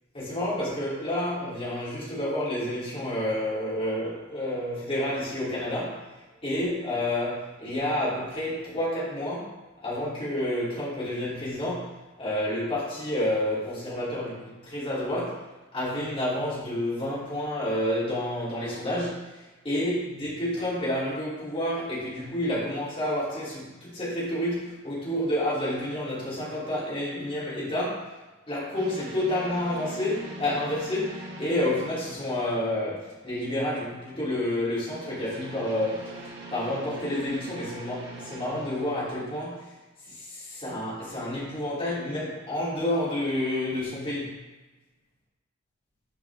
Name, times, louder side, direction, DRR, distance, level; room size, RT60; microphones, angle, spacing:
voice 1, 0.1-6.0 6.4-9.6 9.8-15.4 15.7-28.1 28.5-36.2 36.5-39.7 40.1-44.4, left 1 dB, 25° left, -9 dB, 3.0 m, -29 dB
sound 1, 28.7-33.2 34.7-39.6, right 2 dB, 60° right, 1.3 m, -42 dB
11.5 x 5.0 x 3.5 m, 1.1 s
head